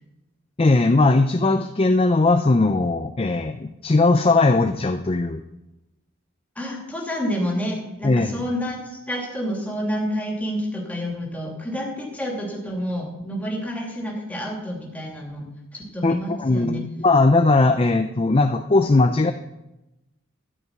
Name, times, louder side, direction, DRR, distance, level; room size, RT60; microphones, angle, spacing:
voice 1, 0.6-5.4 8.0-8.4 16.0-19.3, left 3 dB, 25° left, 8 dB, 0.4 m, -19 dB
voice 2, 6.6-16.8, equal, 5° left, -1 dB, 2.7 m, -29 dB
12.5 x 5.6 x 9.3 m, 0.95 s
head